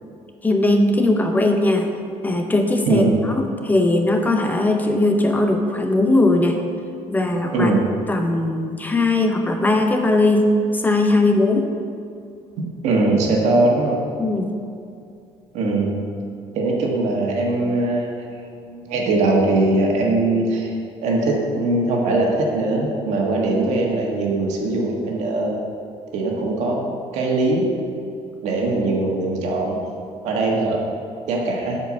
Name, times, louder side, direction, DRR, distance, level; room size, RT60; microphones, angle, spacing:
voice 1, 0.4-1.9 2.2-3.0 3.4-6.6 7.1-7.7 8.1-11.7 14.2-14.5, left 2 dB, 15° left, 4 dB, 0.5 m, -19 dB
voice 2, 7.5-7.8 12.8-14.0 15.5-15.9 16.5-20.7 21.0-25.6 26.1-26.8 27.1-27.7 28.4-29.8 30.2-30.8 31.3-31.8, right 2 dB, 75° right, -1 dB, 1.5 m, -21 dB
8.0 x 4.5 x 6.2 m, 2.4 s
cardioid pair, 145°, 12 cm